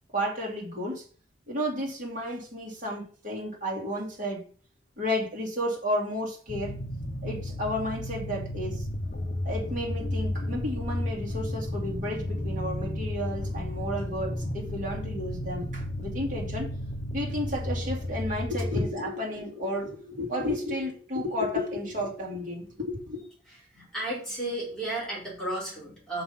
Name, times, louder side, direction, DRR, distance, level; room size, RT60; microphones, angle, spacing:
voice 1, 0.1-1.0 1.5-4.4 5.0-6.7 7.2-8.8 9.4-16.7 17.1-23.2, left 1 dB, 45° right, -2 dB, 2.5 m, -32 dB
sound 1, 6.5-18.9, left 1 dB, 45° left, 0.8 m, -33 dB
voice 2, 23.5-26.2, right 1 dB, 5° left, -7 dB, 4.0 m, -34 dB
5.9 x 5.2 x 5.7 m, 0.43 s
head